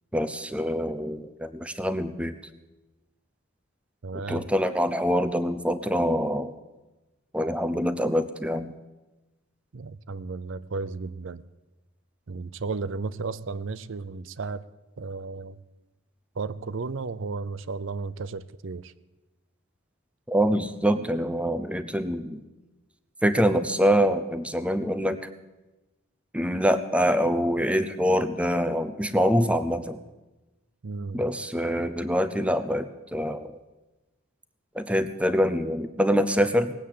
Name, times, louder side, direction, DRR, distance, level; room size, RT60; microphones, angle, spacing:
voice 1, 0.1-2.4 4.3-6.5 7.3-8.7 20.3-22.4 23.2-25.2 26.3-30.0 31.1-33.6 34.7-36.7, equal, 5° right, 11 dB, 0.6 m, -25 dB
voice 2, 4.0-4.5 9.7-11.4 12.3-14.7 15.0-15.6 16.4-18.9 30.8-31.2, right 4 dB, 65° right, 17 dB, 0.5 m, -34 dB
19.0 x 8.5 x 7.5 m, 1.1 s
head